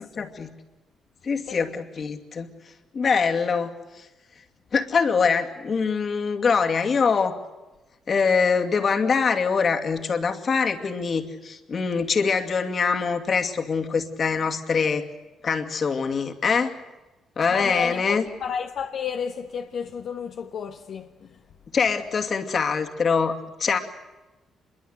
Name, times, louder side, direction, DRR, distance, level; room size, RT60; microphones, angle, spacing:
voice 1, 0.2-0.5 1.2-2.5 2.9-4.1 4.7-7.4 8.1-15.1 15.4-16.8 17.4-18.2 21.7-23.8, left 5 dB, 45° left, 2.5 m, -24 dB
voice 2, 17.5-21.4, left 7 dB, 65° left, 1.3 m, -32 dB
25.5 x 22.5 x 8.1 m
cardioid pair, 90°, 0 cm